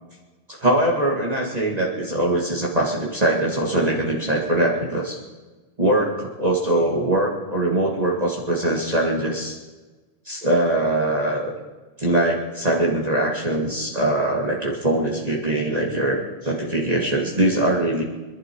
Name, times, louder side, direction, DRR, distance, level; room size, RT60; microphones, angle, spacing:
voice 1, 0.5-5.2 5.8-9.6 10.3-11.5 12.0-18.0, right 1 dB, 35° right, -3 dB, 2.3 m, -22 dB
26.0 x 12.0 x 4.6 m, 1.2 s
omnidirectional pair, 1.2 m